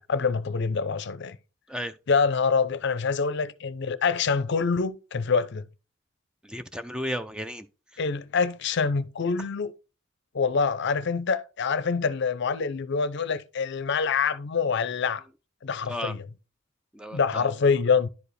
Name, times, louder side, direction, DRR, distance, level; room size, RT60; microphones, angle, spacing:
voice 1, 0.0-1.4 2.1-5.6 8.0-9.7 10.3-15.2 15.6-16.3 17.1-18.1, left 5 dB, 55° left, 0.5 m, -25 dB
voice 2, 6.5-7.7 15.9-16.1 16.9-17.5, equal, 5° right, 0.3 m, -33 dB
10.5 x 4.8 x 3.2 m
head